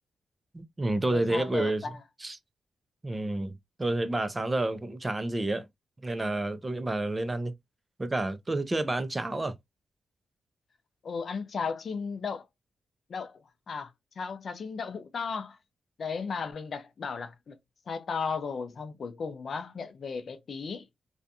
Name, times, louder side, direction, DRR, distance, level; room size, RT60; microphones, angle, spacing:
voice 1, 0.5-1.8 2.2-2.4 3.0-5.7 6.0-7.5 8.0-9.5, right 2 dB, 15° right, 0.3 m, -29 dB
voice 2, 1.1-2.0 11.0-12.5 13.1-15.6 16.0-17.6 17.9-20.9, left 5 dB, 45° left, 0.5 m, -35 dB
2.5 x 2.2 x 2.6 m
wide cardioid pair, 155°, 0 cm